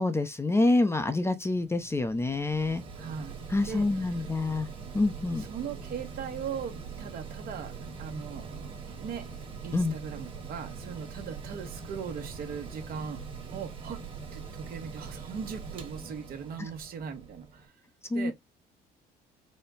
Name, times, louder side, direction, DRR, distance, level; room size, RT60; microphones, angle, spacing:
voice 1, 0.0-2.8 3.5-4.7 4.9-5.5 9.7-9.9 18.1-18.3, left 2 dB, 15° left, 0.6 m, -27 dB
Mechanical fan, 1.4-17.7, right 5 dB, 30° right, 1.5 m, -42 dB
voice 2, 2.9-3.4 3.6-4.2 5.4-7.7 8.0-9.3 9.6-13.2 13.5-14.0 14.3-17.7 18.1-18.3, right 7 dB, 60° right, 1.3 m, -39 dB
4.3 x 2.2 x 3.9 m
cardioid pair, 110°, 17 cm